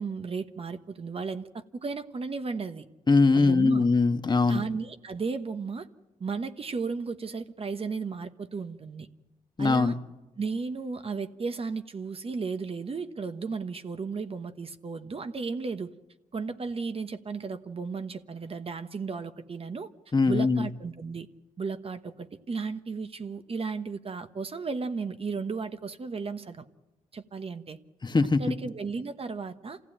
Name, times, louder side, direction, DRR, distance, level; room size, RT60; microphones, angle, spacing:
voice 1, 0.0-2.9 3.3-3.9 4.5-5.9 6.2-9.1 9.6-9.9 10.4-15.9 16.3-19.9 20.3-21.3 21.6-26.7 27.1-27.8 28.4-29.8, right 4 dB, 45° right, 9 dB, 1.2 m, -34 dB
voice 2, 3.1-4.6 9.6-9.9 20.1-20.7 28.0-28.4, left 3 dB, 35° left, 8 dB, 1.3 m, -22 dB
27.0 x 15.5 x 8.8 m, 1.1 s
cardioid pair, 70°, 13 cm